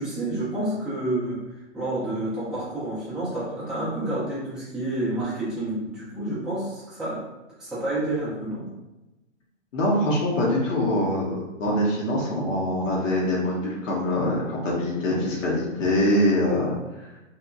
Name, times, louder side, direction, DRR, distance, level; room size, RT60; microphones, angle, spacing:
voice 1, 0.0-1.5 1.7-7.2 7.6-8.7, right 1 dB, ahead, -12 dB, 0.6 m, -29 dB
voice 2, 9.7-16.7 17.0-17.1, left 1 dB, 75° left, -4 dB, 0.9 m, -24 dB
2.8 x 2.1 x 2.3 m, 1.0 s
hypercardioid pair, 130°, 38 cm